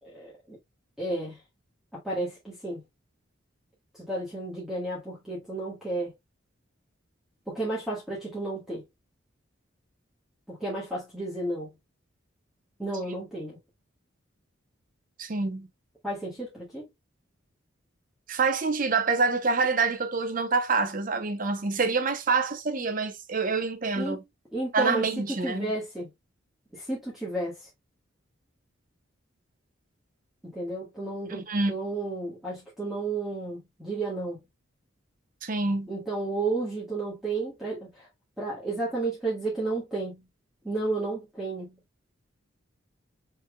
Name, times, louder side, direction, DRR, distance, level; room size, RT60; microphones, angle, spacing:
voice 1, 0.0-0.6 1.0-1.4 1.9-2.8 3.9-6.1 7.5-8.8 10.5-11.7 12.8-13.6 16.0-16.9 24.0-24.2 24.5-26.1 26.7-27.7 30.4-34.4 35.9-38.1 38.4-40.3 40.6-41.8, right 2 dB, ahead, 1.4 m, -32 dB
voice 2, 15.2-15.7 18.3-24.2 24.7-25.7 31.3-31.7 35.4-35.9, right 4 dB, 40° right, 0.7 m, -26 dB
5.7 x 3.3 x 2.2 m
head